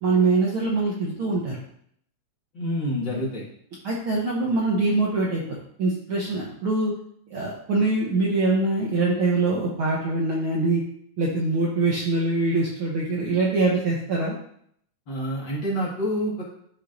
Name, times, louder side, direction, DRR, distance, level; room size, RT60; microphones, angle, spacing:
voice 1, 0.0-1.6 3.8-5.4 5.8-6.9 7.3-10.8 11.2-14.3, right 3 dB, 65° right, -3 dB, 1.4 m, -23 dB
voice 2, 2.5-3.4 15.1-16.4, equal, 45° left, -5 dB, 2.1 m, -27 dB
11.5 x 5.3 x 2.6 m, 0.68 s
omnidirectional pair, 3.4 m